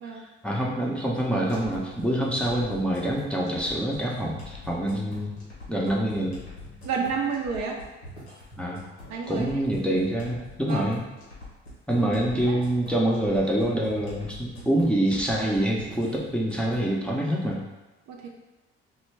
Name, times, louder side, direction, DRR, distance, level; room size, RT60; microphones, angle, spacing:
voice 1, 0.1-5.4 5.7-6.4 8.6-8.8 9.3-11.0 11.9-17.6, right 1 dB, 5° left, -3 dB, 0.5 m, -26 dB
sound 1, 1.5-16.9, left 1 dB, 90° left, 0.8 m, -44 dB
voice 2, 6.8-7.8 9.1-9.5 10.7-10.8 11.9-12.1 12.5-12.6 18.1-18.3, right 5 dB, 60° right, 0 dB, 0.5 m, -30 dB
2.2 x 2.1 x 3.2 m, 1.1 s
hypercardioid pair, 50°, 32 cm